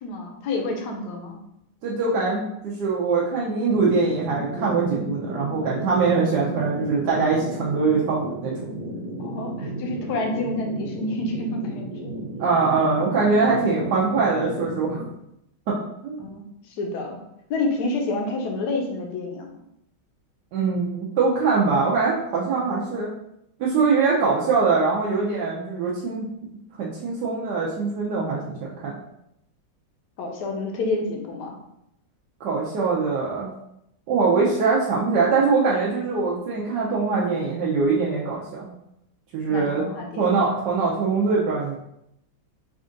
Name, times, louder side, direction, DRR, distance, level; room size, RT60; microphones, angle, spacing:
voice 1, 0.0-1.4 9.2-12.1 16.2-16.4 16.7-17.2 17.5-19.6 30.2-31.6 39.5-40.3, left 2 dB, 65° left, 1 dB, 1.1 m, -28 dB
voice 2, 1.8-8.5 12.4-15.0 15.7-15.8 16.0-16.2 20.5-23.1 23.6-26.3 26.8-28.6 28.8-28.9 32.4-33.5 34.1-38.7 39.3-39.8 40.2-41.8, right 4 dB, 70° right, -5 dB, 1.1 m, -22 dB
sound 1, 3.7-15.1, right 1 dB, 90° right, 1.6 m, -34 dB
4.3 x 2.5 x 3.8 m, 0.80 s
omnidirectional pair, 2.2 m